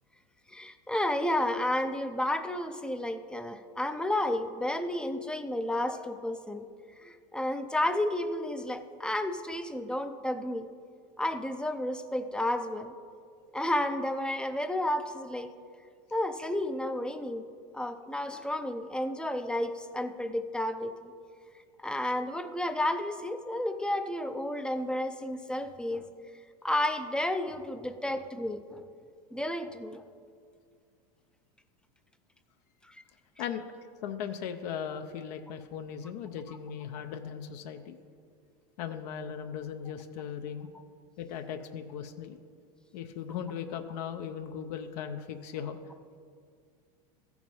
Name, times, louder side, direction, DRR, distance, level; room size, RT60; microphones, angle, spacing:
voice 1, 0.5-6.7 7.0-10.7 11.2-12.9 13.5-15.5 16.1-17.5 17.7-21.1 21.8-26.0 26.6-28.8 29.3-30.0 32.9-33.0, left 1 dB, 5° left, 8 dB, 0.4 m, -31 dB
voice 2, 34.0-38.0 38.8-40.7 41.2-42.4 42.9-45.8, left 8 dB, 70° left, 6 dB, 0.7 m, -38 dB
14.0 x 4.8 x 5.4 m, 2.2 s
supercardioid pair, 125°, 21 cm